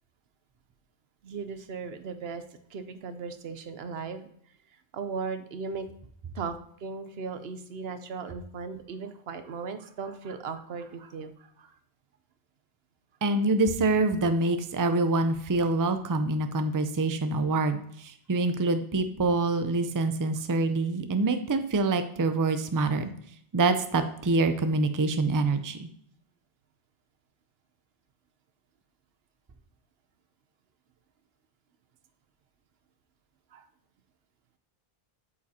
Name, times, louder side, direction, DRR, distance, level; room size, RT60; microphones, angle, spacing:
voice 1, 1.2-2.4 2.7-4.3 4.9-5.9 6.3-11.7 33.5-33.6, right 5 dB, 75° right, 10 dB, 0.9 m, -37 dB
voice 2, 13.2-23.1 23.5-25.9, right 3 dB, 25° right, 9 dB, 0.4 m, -26 dB
8.2 x 7.4 x 2.8 m, 0.66 s
omnidirectional pair, 1.0 m